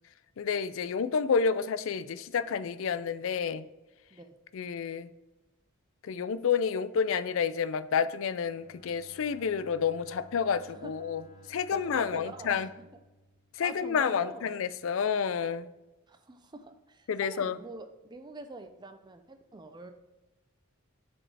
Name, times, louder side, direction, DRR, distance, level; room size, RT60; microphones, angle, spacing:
voice 1, 0.4-3.7 4.5-5.1 6.0-11.2 11.5-12.7 13.5-15.7 17.1-17.6, left 6 dB, 65° left, 15 dB, 0.4 m, -29 dB
Bowed string instrument, 8.4-14.3, left 1 dB, 35° left, 2.0 m, -56 dB
voice 2, 11.7-12.9 13.6-14.5 16.1-19.9, right 2 dB, 20° right, 8 dB, 0.5 m, -45 dB
7.5 x 4.3 x 3.3 m, 1.1 s
head